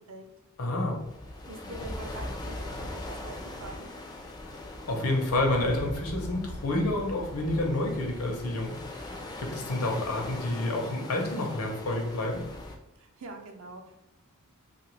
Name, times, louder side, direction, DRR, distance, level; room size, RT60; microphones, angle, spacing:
voice 1, 0.6-1.0 4.9-8.8 9.4-12.4, left 2 dB, 75° left, 1 dB, 0.7 m, -29 dB
sound 1, 0.9-12.8, left 1 dB, 20° left, 0.3 m, -40 dB
voice 2, 1.5-3.9 13.0-14.0, right 2 dB, 65° right, 4 dB, 0.5 m, -44 dB
2.7 x 2.4 x 3.1 m, 0.90 s
head